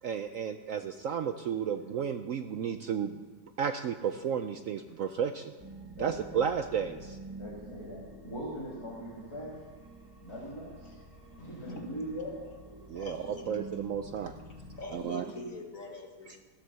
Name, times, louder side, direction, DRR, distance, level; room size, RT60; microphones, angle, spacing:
voice 1, 0.0-3.2 3.6-5.5 6.0-7.2 12.9-13.2 13.5-14.3 14.9-15.3, right 7 dB, 75° right, 8 dB, 0.7 m, -32 dB
sound 1, 5.6-15.0, right 2 dB, 15° right, 1.2 m, -49 dB
voice 2, 7.4-9.5 10.2-10.9 11.4-12.4 15.0-15.1, equal, 15° left, -5 dB, 2.2 m, -41 dB
voice 3, 11.1-12.1 13.0-13.6 14.6-16.4, left 2 dB, 50° left, 3 dB, 1.8 m, -45 dB
15.5 x 8.2 x 6.9 m, 1.4 s
omnidirectional pair, 2.0 m